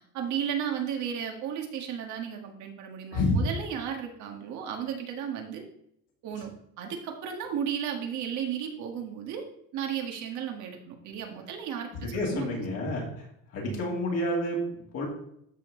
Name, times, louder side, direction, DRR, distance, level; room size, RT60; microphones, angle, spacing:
voice 1, 0.1-5.6 6.2-6.5 6.8-9.4 9.7-12.5 12.8-12.9 13.6-13.9, right 8 dB, 65° right, 3 dB, 1.8 m, -34 dB
voice 2, 3.1-3.5 12.1-13.3 13.5-15.1, left 1 dB, 55° left, -3 dB, 3.0 m, -29 dB
13.0 x 4.7 x 3.9 m, 0.73 s
cardioid pair, 120°, 31 cm